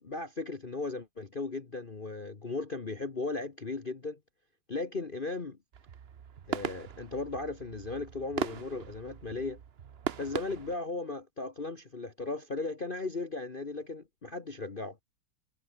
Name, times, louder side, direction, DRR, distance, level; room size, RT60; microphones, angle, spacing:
voice 1, 0.0-4.2 4.7-5.6 6.5-9.6 10.2-15.0, left 3 dB, 30° left, 1.2 m, -36 dB
sound 1, 5.7-10.8, right 8 dB, 85° right, 0.5 m, -39 dB
omnidirectional pair, 2.4 m